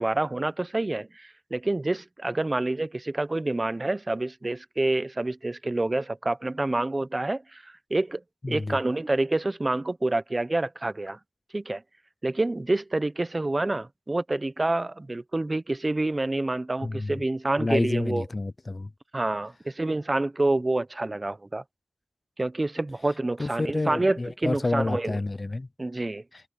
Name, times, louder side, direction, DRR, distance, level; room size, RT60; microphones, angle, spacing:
voice 1, 0.0-8.2 8.5-11.2 11.5-11.8 12.2-18.2 19.1-21.6 22.4-25.2 25.8-26.2, right 2 dB, 30° right, 0.8 m, -27 dB
voice 2, 8.4-8.8 16.8-17.2 17.6-18.9 23.4-25.7 26.3-26.4, left 2 dB, 40° left, 0.5 m, -29 dB
wide cardioid pair, 90°, 0 cm